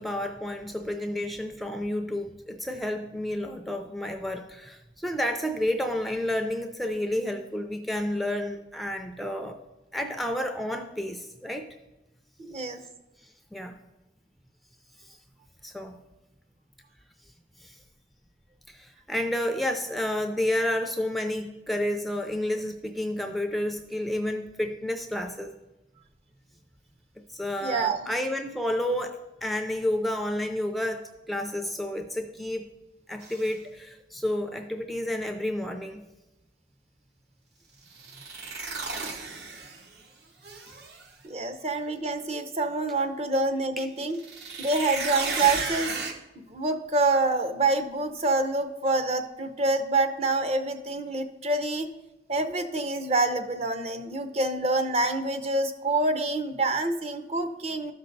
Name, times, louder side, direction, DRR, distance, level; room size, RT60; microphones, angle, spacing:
voice 1, 0.0-9.6 9.9-11.7 13.2-13.8 15.0-15.2 15.6-15.9 17.6-17.8 18.7-25.5 27.3-32.7 33.1-36.0, left 1 dB, ahead, 5 dB, 0.4 m, -30 dB
voice 2, 12.4-12.8 27.6-28.0 41.2-44.2 44.6-45.9 46.4-51.9 52.3-57.9, right 2 dB, 35° right, 7 dB, 0.7 m, -26 dB
sound 1, 33.2-33.5 37.9-40.0 40.4-41.1 44.1-46.1, right 4 dB, 65° right, 1.1 m, -34 dB
13.0 x 5.5 x 3.9 m, 1.0 s
head